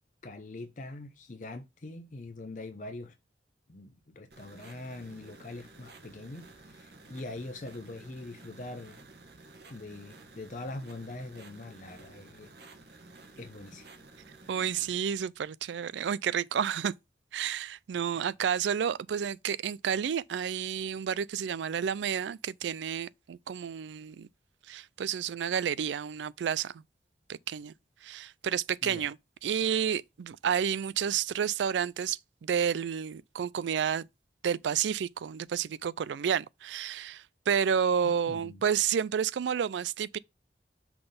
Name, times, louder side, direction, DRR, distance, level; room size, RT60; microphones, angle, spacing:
voice 1, 0.2-3.1 3.7-9.1 9.7-12.5 13.4-13.9 18.1-18.2 28.8-29.1 38.3-38.6, left 2 dB, 45° left, 0.6 m, -43 dB
sound 1, 4.3-14.9, right 2 dB, 65° right, 1.3 m, -53 dB
voice 2, 14.5-16.9 17.3-24.3 24.7-26.8 27.3-27.7 28.0-29.2 29.4-34.1 34.4-40.2, right 8 dB, 80° right, 0.4 m, -30 dB
5.9 x 3.9 x 5.0 m
head